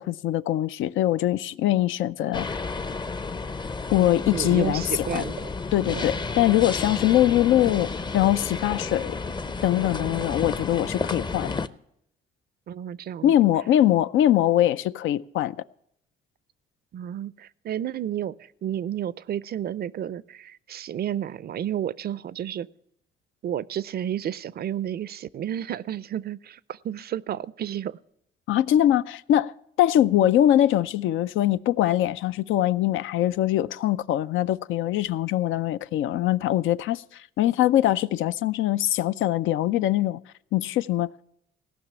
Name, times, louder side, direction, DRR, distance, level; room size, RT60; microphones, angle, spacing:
voice 1, 0.0-2.5 3.9-5.2 5.7-9.2 9.6-11.6 13.2-15.6 28.5-29.5 29.8-40.2 40.5-41.1, left 12 dB, 80° left, 0.5 m, -22 dB
sound 1, 2.3-11.7, left 4 dB, 20° left, 0.6 m, -31 dB
voice 2, 4.3-5.5 5.9-6.2 12.7-13.3 16.9-22.7 23.4-28.0, right 10 dB, 50° right, 0.5 m, -31 dB
16.5 x 6.0 x 8.3 m
cardioid pair, 90°, 20 cm